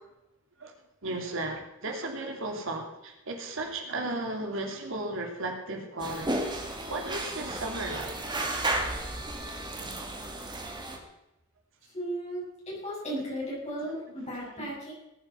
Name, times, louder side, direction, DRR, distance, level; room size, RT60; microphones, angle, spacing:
voice 1, 1.0-6.4 6.9-8.2 8.8-9.1 9.7-10.1 14.2-14.7, right 2 dB, 65° right, 3 dB, 3.0 m, -35 dB
sound 1, 6.0-11.0, right 2 dB, 20° right, 2.3 m, -33 dB
voice 2, 11.9-14.9, right 1 dB, 35° left, -6 dB, 6.7 m, -35 dB
19.0 x 9.2 x 5.8 m, 0.89 s
head